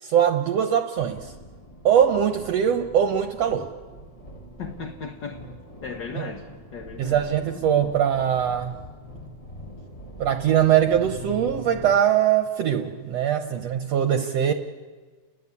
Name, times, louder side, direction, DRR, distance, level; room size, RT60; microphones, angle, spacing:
voice 1, 0.0-1.3 1.8-3.7 6.2-6.3 7.0-8.7 10.2-14.5, right 9 dB, 65° right, 7 dB, 1.9 m, -22 dB
sound 1, 1.0-12.0, equal, 30° left, 0.6 m, -42 dB
voice 2, 4.6-5.4 5.8-6.4 6.7-7.2 13.5-13.6, left 5 dB, 50° left, 3 dB, 1.5 m, -36 dB
30.0 x 21.0 x 8.4 m, 1.4 s
omnidirectional pair, 3.5 m